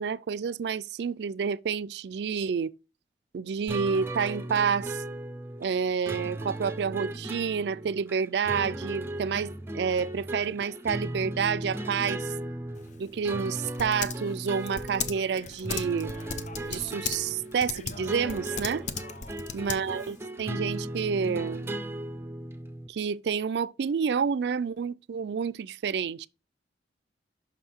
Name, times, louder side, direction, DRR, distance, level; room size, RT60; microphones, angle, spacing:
voice 1, 0.0-2.7 3.3-5.0 5.6-12.3 13.0-16.1 16.7-18.9 19.5-21.7 22.9-26.3, right 6 dB, 65° right, 0.4 m, -29 dB
sound 1, 3.7-22.9, right 1 dB, 15° right, 0.6 m, -37 dB
Typing, 12.8-20.2, left 6 dB, 45° left, 0.6 m, -38 dB
6.0 x 5.6 x 4.3 m
head